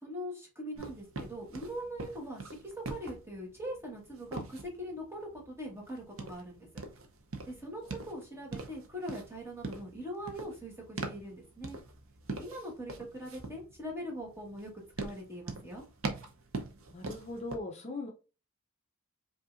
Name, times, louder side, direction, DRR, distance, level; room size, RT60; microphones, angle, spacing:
voice 1, 0.0-6.8 7.5-11.8 12.3-14.7 15.0-15.8, equal, 10° right, -1 dB, 1.3 m, -42 dB
sound 1, 0.7-17.6, right 3 dB, 70° right, 0.8 m, -43 dB
voice 2, 16.9-18.1, left 2 dB, 30° left, 1 dB, 0.5 m, -39 dB
5.1 x 2.7 x 2.5 m, 0.33 s
head